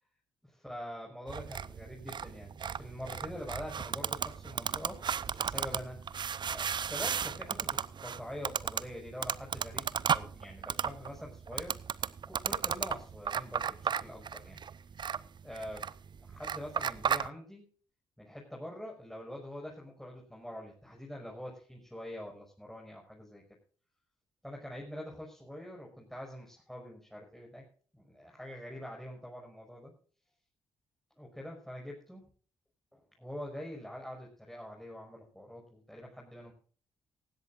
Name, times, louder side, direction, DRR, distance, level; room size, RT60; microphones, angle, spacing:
voice 1, 0.6-6.0 6.5-11.8 12.3-14.6 15.4-15.9 16.3-17.7 18.2-23.4 24.4-27.6 27.9-29.9 31.1-32.3 32.9-36.5, equal, ahead, -2 dB, 5.9 m, -45 dB
sound 1, 1.3-17.3, right 7 dB, 45° right, 0.7 m, -35 dB
18.5 x 16.0 x 2.5 m, 0.42 s
hypercardioid pair, 45°, 11 cm